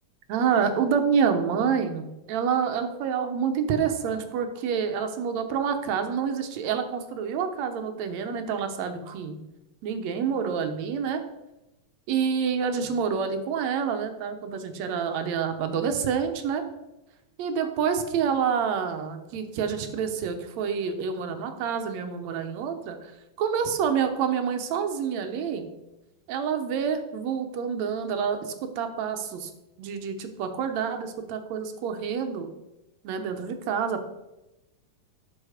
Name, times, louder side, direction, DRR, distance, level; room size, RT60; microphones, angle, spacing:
voice 1, 0.3-9.4 9.8-11.2 12.1-16.6 17.4-23.1 23.4-25.7 26.3-29.5 29.8-32.5 33.0-34.1, right 7 dB, 65° right, 6 dB, 1.9 m, -27 dB
11.5 x 6.3 x 5.0 m, 0.97 s
omnidirectional pair, 3.9 m